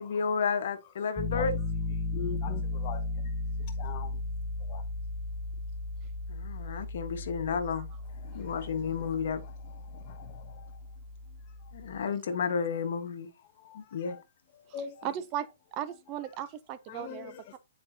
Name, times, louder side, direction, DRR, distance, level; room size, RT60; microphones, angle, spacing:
voice 1, 0.0-1.5 6.3-7.9 8.3-9.4 11.7-13.3 13.7-14.2, left 6 dB, 60° left, 1.2 m, -31 dB
Piano, 1.2-12.0, left 2 dB, 10° left, 0.9 m, -36 dB
voice 2, 2.1-4.2 4.6-4.9 8.1-10.8 11.3-11.7 12.3-12.4 13.4-14.2 14.5-15.1 16.9-17.6, left 8 dB, 30° left, 0.6 m, -44 dB
voice 3, 15.0-17.6, right 10 dB, 25° right, 0.5 m, -37 dB
9.7 x 4.4 x 2.7 m
hypercardioid pair, 160°, 0 cm